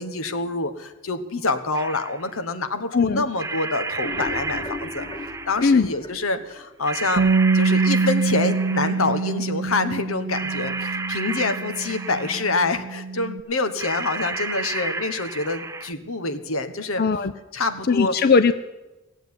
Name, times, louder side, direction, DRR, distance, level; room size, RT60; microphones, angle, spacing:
voice 1, 0.0-5.0 5.5-7.2 7.5-17.0 17.5-18.1, left 3 dB, 85° left, 9 dB, 1.3 m, -26 dB
sound 1, 1.7-2.3 3.4-5.8 6.8-9.3 10.3-12.7 13.8-15.9, right 4 dB, 15° right, 0.6 m, -32 dB
voice 2, 2.9-3.3 5.6-5.9 17.0-17.3 17.8-18.5, left 5 dB, 45° left, 11 dB, 0.5 m, -18 dB
sound 2, 3.8-7.1 7.4-7.5 7.9-8.0 8.4-8.5, left 2 dB, 25° left, 1.1 m, -36 dB
Bass guitar, 7.2-13.4, right 4 dB, 90° right, 0.6 m, -24 dB
17.0 x 7.9 x 9.6 m, 1.1 s
head